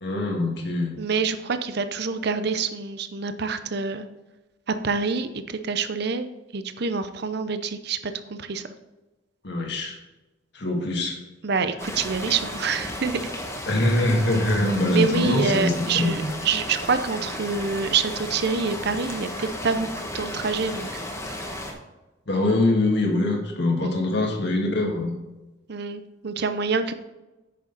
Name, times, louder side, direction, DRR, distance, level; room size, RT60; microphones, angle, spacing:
voice 1, 0.0-0.9 9.4-10.0 10.5-11.2 13.7-16.2 22.3-25.1, left 2 dB, 60° left, 1 dB, 1.9 m, -23 dB
voice 2, 1.0-4.0 4.7-8.6 11.4-13.2 14.9-21.0 23.8-23.9 25.7-26.9, right 5 dB, 60° right, 10 dB, 0.6 m, -26 dB
sound 1, 11.8-21.7, left 1 dB, 15° left, 1.4 m, -34 dB
9.4 x 6.5 x 4.0 m, 1.1 s
head